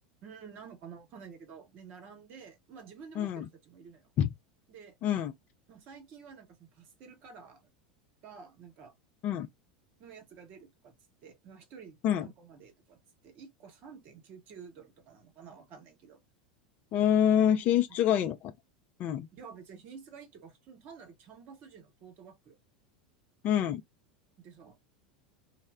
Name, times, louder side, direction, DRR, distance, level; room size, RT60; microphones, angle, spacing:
voice 1, 0.2-4.1 4.7-5.0 5.7-7.7 8.2-8.9 10.0-10.9 11.2-16.2 19.4-22.5 24.4-24.8, right 6 dB, 45° right, 0.9 m, -50 dB
voice 2, 3.2-3.5 4.2-4.3 5.0-5.3 9.2-9.5 12.0-12.3 16.9-18.5 19.0-19.3 23.4-23.8, left 10 dB, 40° left, 0.4 m, -26 dB
2.1 x 2.0 x 3.4 m
figure-of-eight pair, 80°, 4 cm